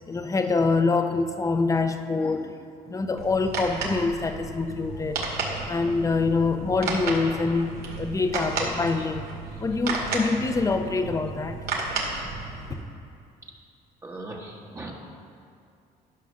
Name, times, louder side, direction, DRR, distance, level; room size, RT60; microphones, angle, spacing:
voice 1, 0.1-2.6 2.9-5.2 5.6-9.3 9.6-11.6, left 3 dB, 20° left, 7 dB, 0.7 m, -25 dB
sound 1, 3.2-12.8, right 3 dB, 70° right, 2.1 m, -33 dB
voice 2, 14.0-14.9, right 2 dB, 20° right, -1 dB, 1.2 m, -38 dB
11.5 x 5.6 x 6.4 m, 2.5 s
cardioid pair, 110°, 17 cm